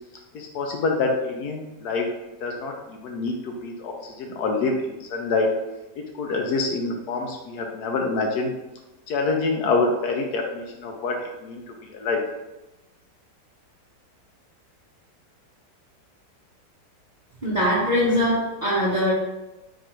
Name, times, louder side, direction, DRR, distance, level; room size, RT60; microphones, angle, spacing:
voice 1, 0.3-2.0 2.4-5.5 6.1-8.5 9.1-11.6 11.9-12.2, left 3 dB, 70° left, 2 dB, 1.0 m, -26 dB
voice 2, 17.4-19.1, equal, 40° right, -7 dB, 0.6 m, -22 dB
4.5 x 2.5 x 4.3 m, 1.0 s
omnidirectional pair, 1.9 m